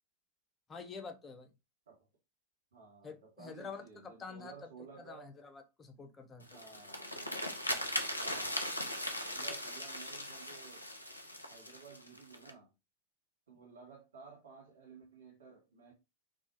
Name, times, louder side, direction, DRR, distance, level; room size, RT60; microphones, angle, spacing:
voice 1, 0.7-1.5 3.0-4.7 5.0-6.6, left 5 dB, 20° left, 0.5 m, -48 dB
voice 2, 2.7-5.3 6.4-7.1 8.2-8.7 9.2-10.9 11.5-12.7 13.5-15.9, right 6 dB, 65° right, 1.0 m, -55 dB
sound 1, 6.4-12.5, left 1 dB, 85° left, 0.4 m, -39 dB
2.2 x 2.0 x 2.8 m
figure-of-eight pair, 90°, 0 cm